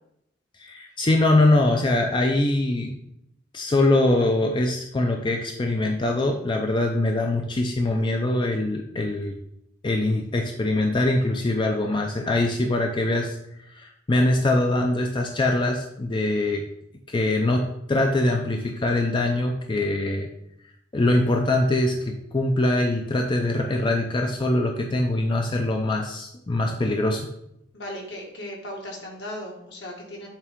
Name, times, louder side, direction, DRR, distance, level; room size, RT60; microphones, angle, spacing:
voice 1, 0.6-3.0 3.5-9.4 9.8-16.6 17.1-20.3 20.9-27.3, left 2 dB, 25° left, 3 dB, 0.4 m, -23 dB
voice 2, 27.7-30.3, left 1 dB, 65° left, -1 dB, 1.6 m, -37 dB
7.4 x 3.7 x 3.5 m, 0.79 s
head